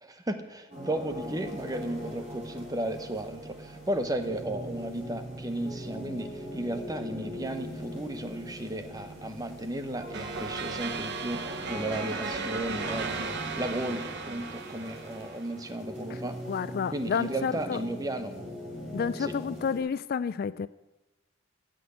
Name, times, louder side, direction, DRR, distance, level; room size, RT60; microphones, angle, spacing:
voice 1, 0.0-16.4 16.9-18.3 19.2-19.4, right 1 dB, 20° right, 8 dB, 1.0 m, -34 dB
sound 1, 0.7-19.8, equal, 35° right, 3.4 m, -41 dB
sound 2, 1.1-12.0, right 4 dB, 85° right, 1.1 m, -50 dB
sound 3, 10.1-15.6, right 5 dB, 60° right, 1.1 m, -36 dB
voice 2, 16.5-17.8 18.9-20.7, left 6 dB, 50° left, 16 dB, 0.3 m, -30 dB
15.0 x 6.3 x 8.5 m, 1.1 s
head